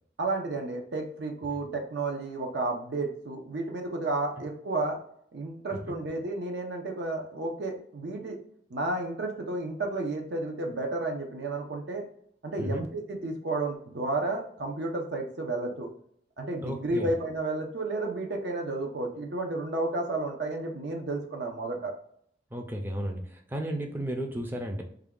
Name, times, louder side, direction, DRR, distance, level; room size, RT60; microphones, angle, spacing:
voice 1, 0.2-5.0 5.3-8.4 8.7-12.0 12.4-15.9 16.4-21.9, right 2 dB, 75° right, 2 dB, 0.7 m, -32 dB
voice 2, 16.6-17.1 22.5-24.8, right 1 dB, 10° right, 3 dB, 0.4 m, -33 dB
3.5 x 2.2 x 3.6 m, 0.64 s
head